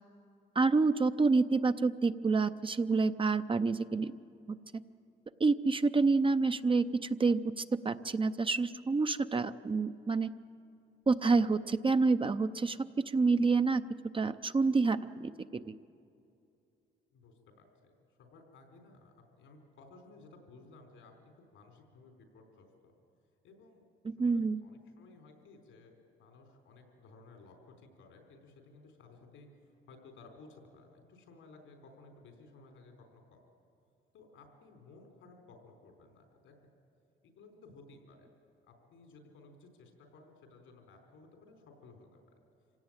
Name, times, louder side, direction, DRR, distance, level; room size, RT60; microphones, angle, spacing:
voice 1, 0.5-4.1 4.5-4.6 5.4-10.3 11.1-13.8 14.1-15.8 24.2-24.6, right 4 dB, 25° right, 10 dB, 0.6 m, -28 dB
voice 2, 17.1-17.9 18.2-22.9 23.4-23.8 24.2-25.9 26.2-29.5 29.9-33.4 34.1-36.5 37.2-38.3 38.7-42.2, left 3 dB, 85° left, 3 dB, 4.3 m, -57 dB
26.0 x 17.0 x 9.0 m, 2.6 s
cardioid pair, 90°, 20 cm